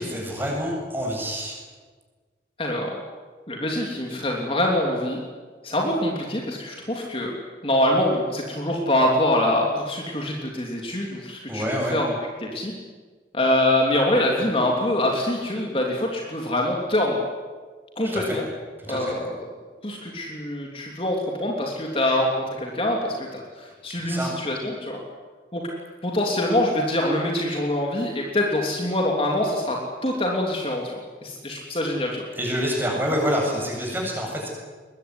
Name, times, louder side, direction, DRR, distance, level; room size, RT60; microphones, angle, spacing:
voice 1, 0.0-1.6 11.5-12.0 18.0-18.4 18.9-19.1 24.0-24.3 32.3-34.5, equal, 10° right, -1 dB, 8.0 m, -27 dB
voice 2, 2.6-2.9 3.5-5.2 5.6-7.3 7.6-12.0 12.5-12.7 13.3-17.2 18.0-18.5 18.9-19.4 19.8-25.0 25.5-25.6 26.0-29.8 30.0-30.9 31.2-32.2, left 1 dB, 30° left, -1 dB, 3.2 m, -24 dB
23.5 x 21.0 x 9.8 m, 1.5 s
head